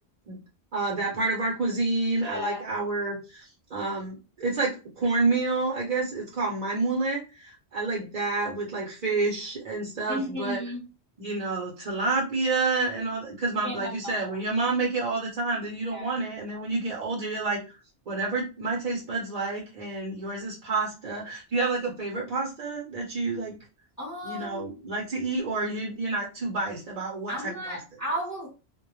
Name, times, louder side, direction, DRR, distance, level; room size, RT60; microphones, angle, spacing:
voice 1, 0.7-3.4 3.7-10.6 11.2-17.7 18.1-23.5 24.2-27.8, right 3 dB, 50° right, -3 dB, 0.7 m, -29 dB
voice 2, 2.2-2.6 10.1-10.8 13.4-14.3 15.9-16.1 24.0-24.8 27.3-28.5, equal, 20° left, -2 dB, 0.6 m, -34 dB
2.1 x 2.1 x 2.9 m, 0.31 s
omnidirectional pair, 1.1 m